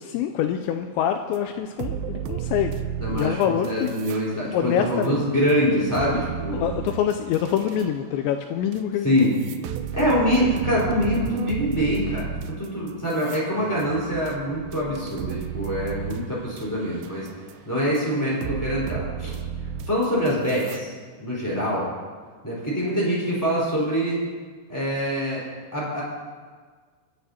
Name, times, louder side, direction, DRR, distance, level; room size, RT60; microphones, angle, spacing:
voice 1, 0.0-2.9 3.1-3.9 4.5-5.2 6.5-9.2, left 9 dB, 90° left, 6 dB, 2.6 m, -25 dB
sound 1, 1.3-1.4 1.8-4.2 4.6-7.9 8.7-8.8 9.2-16.6 17.0-17.5 18.0-18.1 18.4-20.8, right 9 dB, 90° right, 2.4 m, -33 dB
voice 2, 3.0-6.7 9.0-9.4 9.9-17.3 17.6-19.4 19.9-20.9 21.2-21.9 22.4-24.2 24.7-25.4 25.7-26.0, equal, 5° left, -7 dB, 3.4 m, -24 dB
27.5 x 9.3 x 2.8 m, 1.5 s
omnidirectional pair, 5.7 m